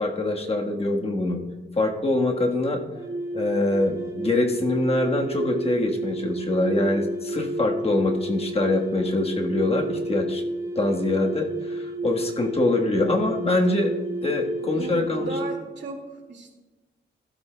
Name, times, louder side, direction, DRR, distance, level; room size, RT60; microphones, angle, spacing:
voice 1, 0.0-1.4 1.7-2.8 3.3-10.4 10.7-15.3, left 2 dB, 30° left, 1 dB, 1.4 m, -24 dB
sound 1, 2.9-15.7, right 2 dB, 15° right, 1.2 m, -32 dB
voice 2, 14.6-16.5, right 3 dB, 70° right, 2 dB, 2.1 m, -36 dB
14.5 x 12.5 x 2.2 m, 1.2 s
wide cardioid pair, 110°, 19 cm